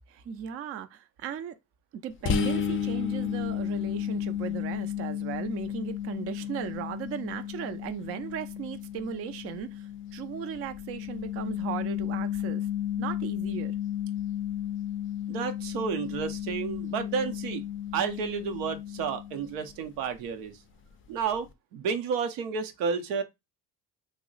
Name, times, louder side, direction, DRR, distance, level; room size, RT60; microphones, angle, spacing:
voice 1, 0.1-1.6 2.0-12.7 13.0-13.7, right 8 dB, 35° right, 0.4 m, -37 dB
sound 1, 2.3-19.8, left 9 dB, 30° left, 0.4 m, -33 dB
voice 2, 15.3-17.6 17.9-20.6 21.1-21.5 21.7-23.2, right 6 dB, 75° right, 0.7 m, -31 dB
2.7 x 2.0 x 3.8 m
supercardioid pair, 75°, 44 cm